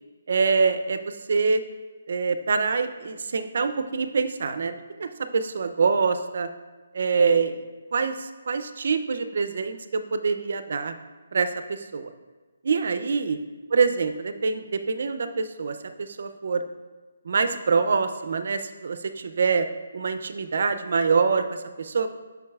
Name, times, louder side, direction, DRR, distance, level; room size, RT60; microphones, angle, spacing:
voice 1, 0.3-1.6 2.1-6.5 6.9-7.6 7.9-10.9 11.3-12.1 12.6-13.4 13.7-16.6 17.2-19.7 19.9-22.1, right 5 dB, 60° right, 9 dB, 0.4 m, -25 dB
8.4 x 6.0 x 2.3 m, 1.3 s
hypercardioid pair, 165°, 0 cm